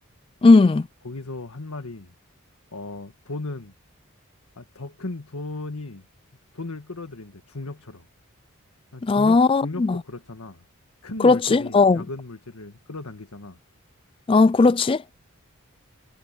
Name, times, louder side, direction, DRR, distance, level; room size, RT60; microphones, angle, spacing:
voice 1, 0.4-0.9 9.0-10.0 11.2-12.0 14.3-15.0, left 3 dB, 25° left, 0.3 m, -17 dB
voice 2, 1.0-2.1 2.7-3.7 4.6-6.0 6.5-8.1 8.9-10.6 11.0-13.6, left 2 dB, 90° left, 1.6 m, -36 dB
head